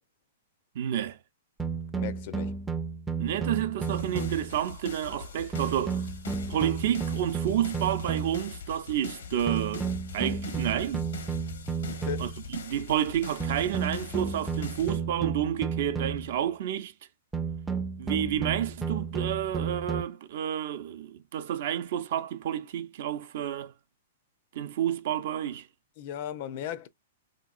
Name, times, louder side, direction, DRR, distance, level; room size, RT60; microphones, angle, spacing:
voice 1, 0.7-1.2 3.2-6.1 6.5-11.1 12.2-16.9 18.0-23.7 24.5-25.7, right 10 dB, 60° right, 0.5 m, -30 dB
sound 1, 1.6-4.6 5.5-8.5 9.5-12.5 13.4-16.4 17.3-20.0, right 5 dB, 10° right, 0.4 m, -33 dB
voice 2, 1.9-2.6 11.9-12.3 26.0-26.9, left 10 dB, 50° left, 0.4 m, -36 dB
sound 2, 3.8-15.0, left 5 dB, 80° left, 0.9 m, -42 dB
2.9 x 2.8 x 2.4 m
hypercardioid pair, 140°, 0 cm